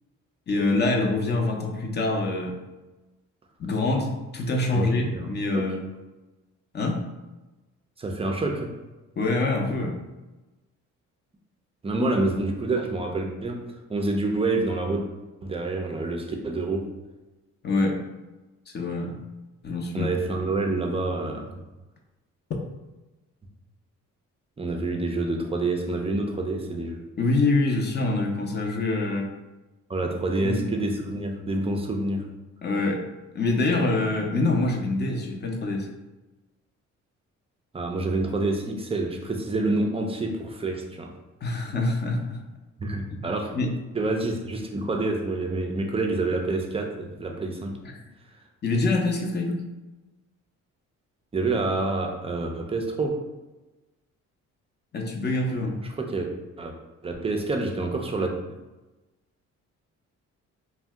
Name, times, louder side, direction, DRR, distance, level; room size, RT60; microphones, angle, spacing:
voice 1, 0.5-2.5 3.6-5.8 6.7-7.1 9.2-9.9 17.6-18.0 18.7-19.2 19.6-20.1 27.2-29.3 30.4-30.6 32.6-33.0 33.3-35.9 41.4-42.4 43.1-43.3 43.5-43.8 48.6-49.7 54.9-55.8, left 2 dB, 35° left, 2 dB, 0.6 m, -25 dB
voice 2, 4.7-5.2 5.5-5.7 8.0-8.7 11.8-13.6 13.9-15.1 15.4-16.9 19.9-21.6 24.6-27.0 29.9-32.3 37.7-41.1 42.8-43.5 43.9-47.8 51.3-53.1 55.6-56.3 56.6-56.7 57.0-58.3, right 2 dB, 20° right, 3 dB, 0.4 m, -27 dB
2.6 x 2.2 x 3.4 m, 1.1 s
cardioid pair, 90°, 30 cm